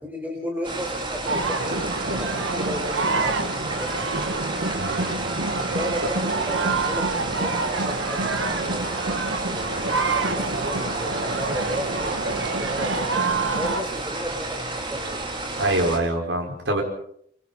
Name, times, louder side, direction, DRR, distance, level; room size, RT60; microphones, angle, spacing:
voice 1, 0.0-4.3 5.5-8.9 9.5-15.4, equal, 10° right, 1 dB, 4.6 m, -34 dB
sound 1, 0.6-16.0, right 2 dB, 25° right, 4.6 m, -31 dB
sound 2, 1.3-13.8, right 3 dB, 85° right, 1.5 m, -27 dB
voice 2, 4.8-5.1 15.6-16.8, right 1 dB, 70° right, 0 dB, 5.2 m, -24 dB
29.0 x 25.5 x 4.3 m, 0.66 s
head